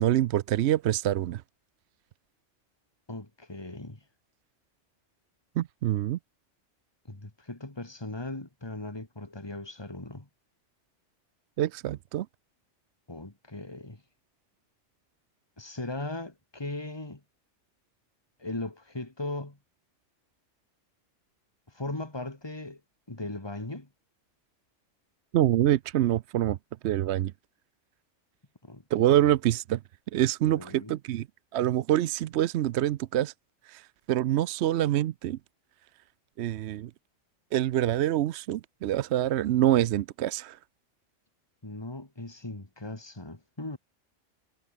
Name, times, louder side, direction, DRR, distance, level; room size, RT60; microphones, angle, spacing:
voice 1, 0.0-1.4 5.6-6.2 11.6-12.3 25.3-26.6 26.8-27.3 28.9-29.8 30.1-31.3 31.5-33.3 33.7-35.4 36.4-36.9 37.5-40.6, right 13 dB, 70° right, 0.8 m, -26 dB
voice 2, 3.1-4.0 7.1-10.3 13.1-14.0 15.6-17.2 18.4-19.6 21.7-22.8 23.1-23.9 28.6-29.1 30.6-31.0 41.6-43.8, left 2 dB, 20° left, 2.6 m, -38 dB
omnidirectional pair, 1.3 m